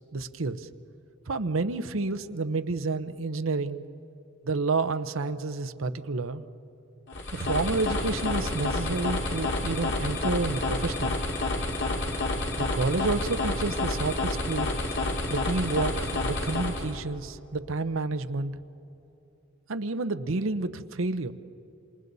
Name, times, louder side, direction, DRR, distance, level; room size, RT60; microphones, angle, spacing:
voice 1, 0.1-0.7 1.3-3.8 4.4-6.4 7.3-11.1 12.6-14.7 15.3-18.5 19.7-21.3, right 3 dB, 75° right, 11 dB, 0.8 m, -29 dB
sound 1, 7.1-17.0, left 2 dB, 60° left, 2.5 m, -29 dB
28.0 x 27.0 x 4.1 m, 2.9 s
head